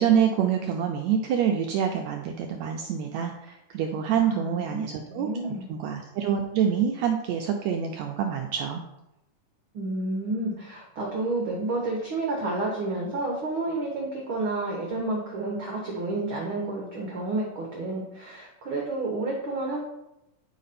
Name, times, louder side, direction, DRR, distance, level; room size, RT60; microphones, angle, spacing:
voice 1, 0.0-5.3 5.7-8.8, right 8 dB, 85° right, 3 dB, 1.6 m, -26 dB
voice 2, 4.1-5.7 9.7-19.8, right 2 dB, 55° right, -1 dB, 1.5 m, -30 dB
9.3 x 5.1 x 4.2 m, 0.88 s
omnidirectional pair, 3.8 m